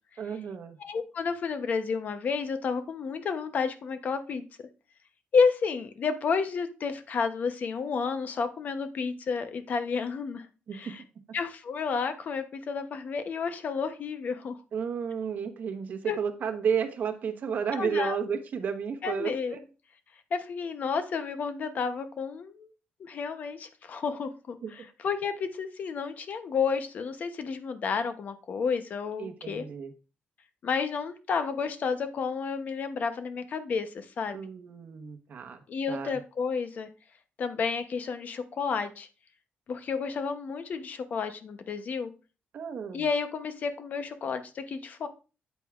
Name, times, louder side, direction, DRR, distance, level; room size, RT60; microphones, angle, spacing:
voice 1, 0.2-0.8 10.7-11.0 14.7-19.6 24.6-24.7 29.2-29.9 34.3-35.6 35.9-36.2 42.5-43.0, right 7 dB, 55° right, 7 dB, 1.1 m, -32 dB
voice 2, 0.8-4.4 5.3-10.4 10.7-11.0 11.3-14.6 16.1-16.2 17.8-18.2 19.0-19.6 20.3-22.7 23.0-29.6 30.6-34.4 35.7-36.9 37.4-39.1 39.7-42.1 42.9-45.1, left 5 dB, 50° left, 9 dB, 0.8 m, -31 dB
8.3 x 7.9 x 2.4 m, 0.34 s
cardioid pair, 150°, 4 cm